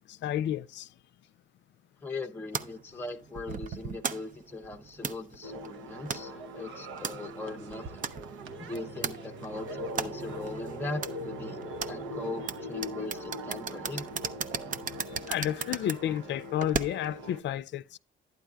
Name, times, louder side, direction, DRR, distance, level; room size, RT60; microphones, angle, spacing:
voice 1, 0.1-0.9 15.0-18.0, left 11 dB, 65° left, 0.4 m, -31 dB
voice 2, 2.0-8.0 8.6-11.6 11.9-14.0, left 2 dB, 10° left, 0.7 m, -39 dB
sound 1, 2.5-17.2, right 6 dB, 40° right, 0.6 m, -38 dB
sound 2, 5.4-17.4, equal, 80° right, 0.8 m, -41 dB
11.0 x 9.4 x 2.3 m
cardioid pair, 90°, 20 cm